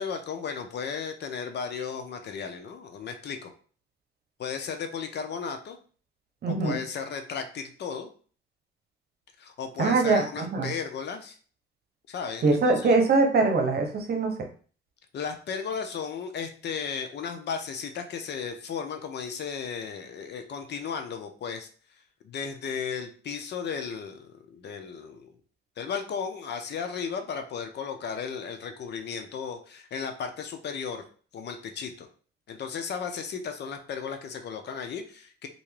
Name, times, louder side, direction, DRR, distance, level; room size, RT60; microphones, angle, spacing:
voice 1, 0.0-3.5 4.4-5.8 6.5-8.1 9.4-11.4 12.1-12.9 15.1-21.7 22.2-25.4 25.8-31.0 31.3-32.1 32.5-35.5, left 6 dB, 60° left, 6 dB, 0.6 m, -35 dB
voice 2, 6.4-6.8 9.8-10.7 12.4-14.3, right 3 dB, 55° right, 3 dB, 0.9 m, -23 dB
3.3 x 2.7 x 3.2 m, 0.41 s
cardioid pair, 90°, 20 cm